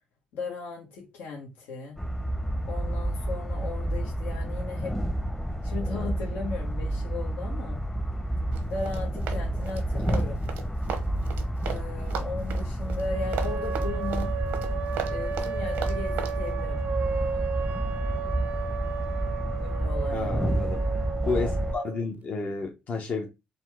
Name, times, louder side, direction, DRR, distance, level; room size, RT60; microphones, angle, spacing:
voice 1, 0.3-2.0 2.7-5.0 5.6-7.8 8.7-10.4 11.6-14.3 15.1-16.8 19.5-20.6, left 4 dB, 85° left, 1.0 m, -37 dB
sound 1, 2.0-21.7, right 1 dB, 15° left, 0.7 m, -30 dB
Run, 8.5-11.8 12.1-16.4, right 7 dB, 85° right, 0.8 m, -36 dB
sound 2, 13.1-22.0, right 7 dB, 55° right, 0.3 m, -34 dB
voice 2, 20.1-20.8 21.2-23.3, left 4 dB, 55° left, 0.8 m, -31 dB
4.0 x 2.2 x 4.6 m
cardioid pair, 85°, 3 cm